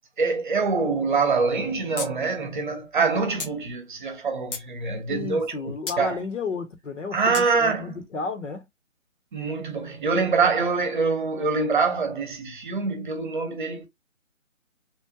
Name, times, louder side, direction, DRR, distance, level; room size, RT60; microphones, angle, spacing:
voice 1, 0.2-6.2 7.1-8.0 9.3-13.9, right 4 dB, 40° right, 0.9 m, -25 dB
sound 1, 2.0-2.1 2.4-2.5 3.4-3.5 4.1-4.7 5.9-6.0 7.3-7.5, left 4 dB, 45° left, 0.9 m, -33 dB
voice 2, 5.1-8.7, left 4 dB, 65° left, 1.3 m, -32 dB
3.3 x 2.4 x 2.8 m
figure-of-eight pair, 150°, 39 cm